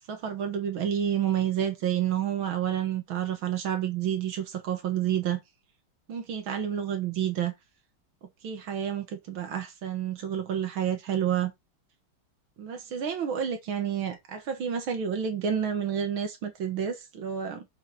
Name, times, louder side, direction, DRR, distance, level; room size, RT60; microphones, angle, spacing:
voice 1, 0.1-5.4 6.1-7.5 8.4-11.5 12.6-17.7, right 9 dB, 85° right, 2.2 m, -29 dB
7.3 x 4.8 x 4.7 m
omnidirectional pair, 2.1 m